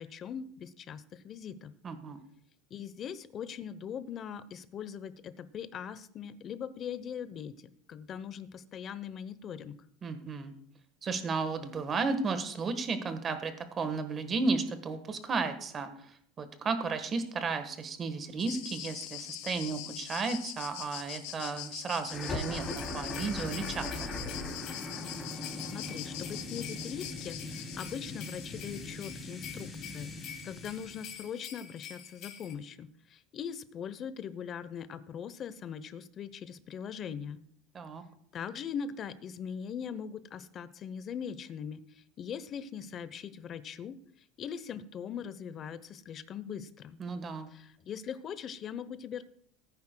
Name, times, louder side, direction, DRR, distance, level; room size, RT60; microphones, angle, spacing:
voice 1, 0.0-1.7 2.7-7.5 7.9-9.8 25.6-30.1 30.4-37.4 38.3-44.0 44.4-47.0 47.5-49.2, left 7 dB, 40° left, 14 dB, 0.7 m, -41 dB
voice 2, 1.8-2.2 10.0-10.5 11.0-15.9 16.4-24.1 37.7-38.0 47.0-47.5, right 4 dB, 30° right, 9 dB, 1.3 m, -33 dB
sound 1, 18.4-29.3, left 13 dB, 80° left, 1.0 m, -43 dB
sound 2, 22.1-31.2, left 2 dB, 15° left, 2.6 m, -40 dB
sound 3, 22.6-32.5, left 9 dB, 55° left, 2.3 m, -48 dB
19.0 x 9.6 x 2.2 m, 0.65 s
supercardioid pair, 130°, 0 cm